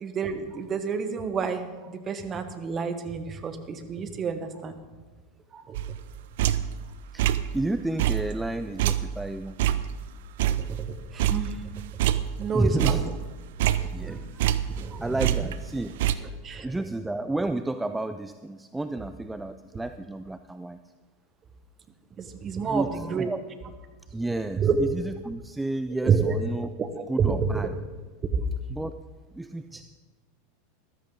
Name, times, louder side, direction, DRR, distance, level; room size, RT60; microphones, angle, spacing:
voice 1, 0.0-4.8 5.5-5.8 10.6-11.6 12.4-13.0 13.7-14.2 14.7-15.1 16.4-16.7 22.2-23.3 24.6-24.8 26.0-26.4 26.8-27.3, right 6 dB, 30° right, 8 dB, 1.2 m, -29 dB
sound 1, 5.7-6.8 7.2-7.6 8.0-10.9 11.2-12.5 12.8-14.9 15.2-16.2, right 11 dB, 60° right, 0.5 m, -26 dB
voice 2, 7.1-9.6 12.5-13.2 13.9-14.7 15.0-16.4 16.6-20.8 22.6-23.4 24.1-26.7 27.1-27.7 28.7-28.9 29.3-29.8, right 2 dB, 10° right, 10 dB, 0.4 m, -31 dB
14.0 x 12.5 x 3.9 m, 1.3 s
figure-of-eight pair, 85°, 0 cm